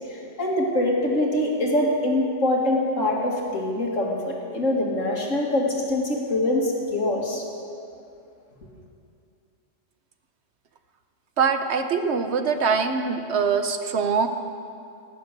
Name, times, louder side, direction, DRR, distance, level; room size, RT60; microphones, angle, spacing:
voice 1, 0.1-7.4, left 1 dB, 90° left, -1 dB, 2.6 m, -24 dB
voice 2, 11.4-14.3, right 5 dB, 65° right, 7 dB, 1.1 m, -23 dB
17.5 x 9.9 x 6.7 m, 2.5 s
omnidirectional pair, 1.3 m